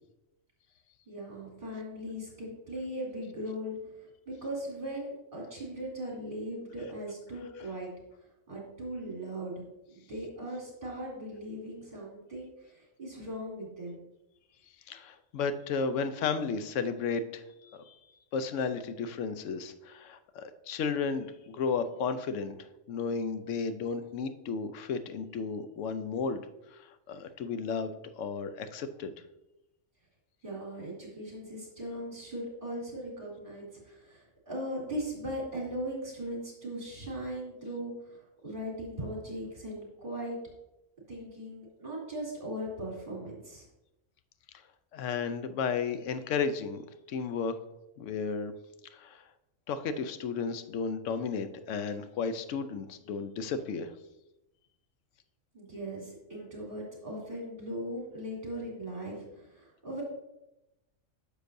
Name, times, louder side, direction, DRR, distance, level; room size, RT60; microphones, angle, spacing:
voice 1, 1.1-7.9 8.5-9.6 9.9-14.0 30.4-40.4 41.1-43.7 55.5-60.0, equal, 40° right, -4 dB, 2.9 m, -39 dB
voice 2, 14.9-17.4 17.7-17.9 18.3-22.5 22.9-26.4 26.7-29.1 44.9-46.8 47.1-47.5 48.0-48.5 48.9-49.2 49.7-53.9, left 5 dB, 70° left, 11 dB, 0.9 m, -33 dB
9.6 x 6.6 x 2.6 m, 0.92 s
omnidirectional pair, 1.4 m